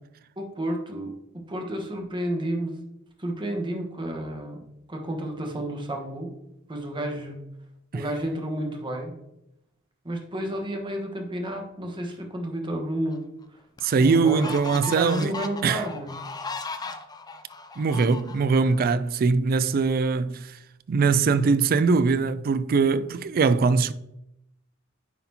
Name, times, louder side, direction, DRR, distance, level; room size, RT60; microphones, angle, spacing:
voice 1, 0.4-2.8 3.2-4.6 4.9-6.3 6.7-7.4 7.9-9.2 10.0-13.3 14.0-16.1, right 1 dB, 25° right, 1.1 m, -31 dB
sound 1, 13.1-13.2 13.8-18.7, left 3 dB, 20° left, 0.4 m, -37 dB
voice 2, 13.8-15.3 15.6-15.8 17.8-20.5 20.9-23.9, right 4 dB, 45° right, 0.3 m, -22 dB
9.4 x 4.2 x 2.8 m
head